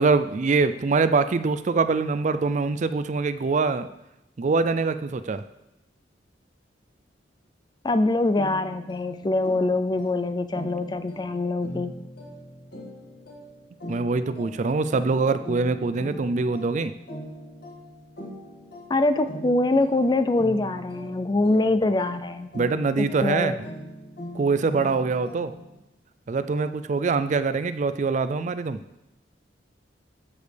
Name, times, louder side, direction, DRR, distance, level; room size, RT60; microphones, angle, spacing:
voice 1, 0.0-3.9 4.4-5.4 13.9-16.9 22.5-23.5 24.3-25.5 26.3-28.8, right 4 dB, 40° right, 12 dB, 0.4 m, -24 dB
voice 2, 7.8-12.0 18.9-22.5 23.0-23.6, left 2 dB, 25° left, 11 dB, 0.4 m, -24 dB
sound 1, 8.3-25.8, equal, 55° left, 2.2 m, -41 dB
13.0 x 7.1 x 3.4 m, 0.89 s
head